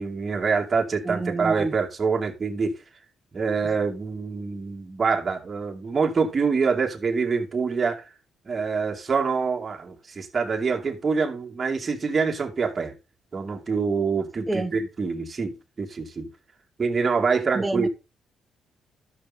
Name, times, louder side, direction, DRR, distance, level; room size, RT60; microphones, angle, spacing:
voice 1, 0.0-2.7 3.3-8.0 8.5-12.9 13.3-16.3 16.8-17.9, right 5 dB, 35° right, 2.4 m, -25 dB
voice 2, 1.0-1.7 14.5-14.8 17.5-17.9, right 3 dB, 15° right, 1.2 m, -27 dB
11.5 x 7.4 x 4.0 m
cardioid pair, 90°, 0 cm